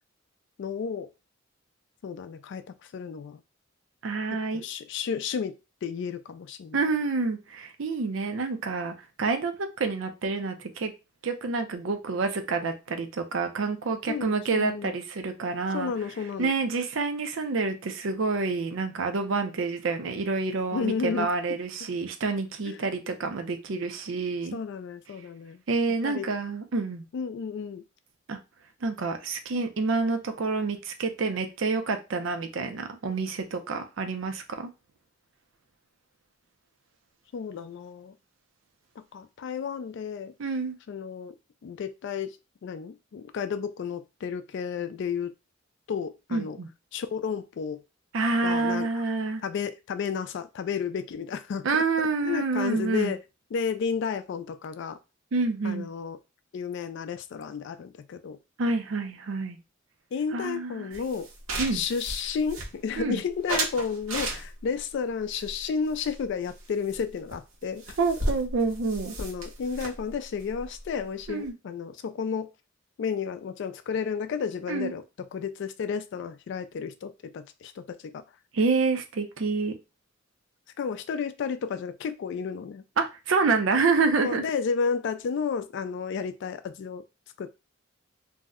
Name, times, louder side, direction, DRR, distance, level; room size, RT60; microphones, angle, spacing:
voice 1, 0.6-1.1 2.0-3.4 4.5-6.8 14.1-14.9 15.7-16.5 20.7-21.3 22.7-22.8 24.5-25.6 26.0-26.3 27.1-27.8 37.3-38.1 39.1-40.3 40.9-41.3 41.6-42.4 42.6-45.3 45.9-46.6 46.9-47.8 48.4-49.0 49.4-51.7 52.2-53.2 53.5-55.0 55.6-56.2 56.5-58.4 60.1-61.3 61.7-68.0 69.2-72.5 73.0-78.2 80.8-82.8 84.2-87.0 87.4-87.5, left 6 dB, 60° left, 0.3 m, -32 dB
voice 2, 4.0-4.6 6.7-10.9 11.2-15.9 16.4-24.6 25.7-27.0 28.3-28.4 28.8-34.7 40.4-40.7 46.3-46.7 48.1-49.4 51.6-53.1 55.3-55.9 58.6-59.6 60.3-60.9 61.6-61.8 63.0-63.2 68.0-69.2 71.3-71.5 74.7-74.9 78.5-79.7 83.0-84.4, right 4 dB, 65° right, 0.5 m, -28 dB
sound 1, 60.9-63.0 63.5-64.8 65.4-66.6 66.9-67.0 67.3-67.4 67.6-71.5, right 2 dB, 80° right, 1.0 m, -34 dB
2.7 x 2.1 x 3.5 m
head